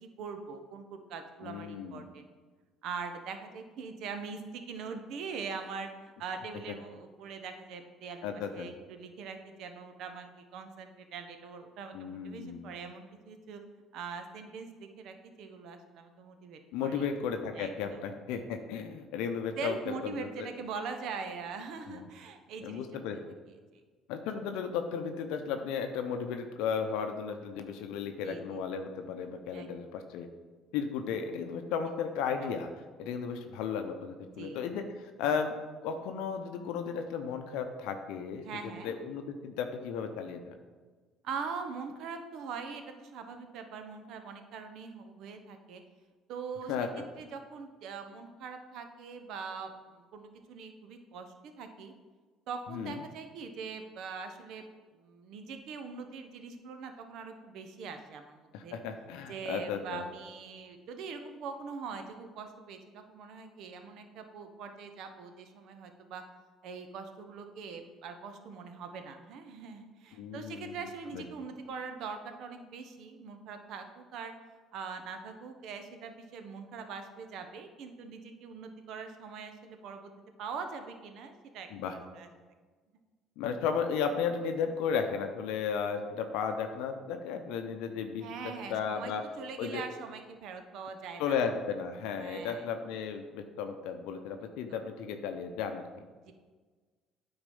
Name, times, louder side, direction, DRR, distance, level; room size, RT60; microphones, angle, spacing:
voice 1, 0.0-2.3 2.8-8.3 8.5-13.6 13.9-17.0 17.5-18.0 19.6-22.8 23.1-23.2 23.7-23.8 28.2-28.6 29.5-29.7 32.4-32.5 34.4-34.6 38.4-38.9 41.2-45.8 46.3-51.9 52.5-54.6 54.9-58.8 59.3-66.2 66.6-74.3 74.7-80.1 80.4-82.3 88.2-91.4 92.2-92.7 94.7-94.8 96.2-96.3, right 5 dB, 70° right, 7 dB, 0.9 m, -42 dB
voice 2, 1.4-2.1 8.2-8.7 11.9-12.7 16.7-20.5 21.9-22.0 22.6-23.4 24.1-30.3 30.7-32.7 33.0-35.6 35.8-40.6 46.7-46.9 52.7-53.0 58.5-60.0 70.1-70.8 71.1-71.2 81.7-82.0 83.4-88.3 88.7-89.2 89.6-89.8 91.2-95.9, left 6 dB, 75° left, 6 dB, 0.6 m, -34 dB
9.0 x 3.9 x 5.4 m, 1.4 s
supercardioid pair, 70°, 0 cm